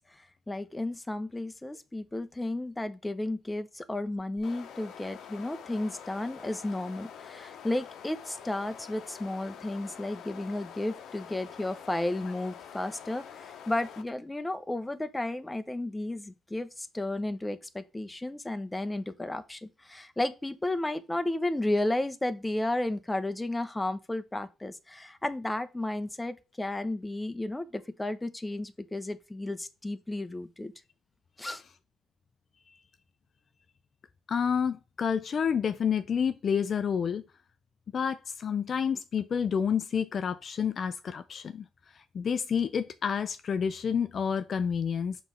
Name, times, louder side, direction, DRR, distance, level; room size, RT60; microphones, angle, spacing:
voice 1, 0.5-30.7 31.4-31.6, left 1 dB, 15° left, 0.8 m, -33 dB
sound 1, 4.4-14.0, left 8 dB, 75° left, 0.8 m, -46 dB
voice 2, 34.3-37.2 37.9-41.6 42.1-45.2, left 7 dB, 55° left, 0.4 m, -29 dB
5.3 x 3.2 x 5.6 m
supercardioid pair, 65°, 0 cm